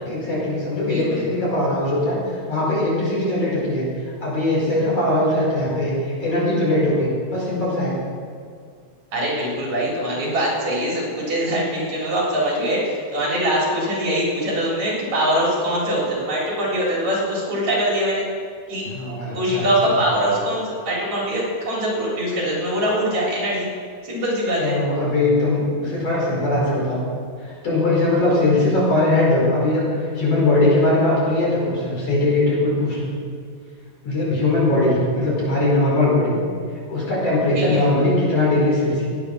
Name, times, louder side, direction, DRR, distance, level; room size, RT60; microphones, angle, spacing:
voice 1, 0.1-2.2 2.5-5.9 6.2-8.0 18.9-20.0 24.6-27.0 27.4-33.1 34.0-36.4 36.9-39.1, left 2 dB, 45° left, -6 dB, 6.0 m, -20 dB
voice 2, 0.8-1.2 9.1-18.2 18.7-18.8 19.3-23.7 24.0-24.8 37.5-37.8, equal, 55° right, -4 dB, 5.2 m, -23 dB
18.0 x 9.6 x 6.0 m, 2.2 s
omnidirectional pair, 3.7 m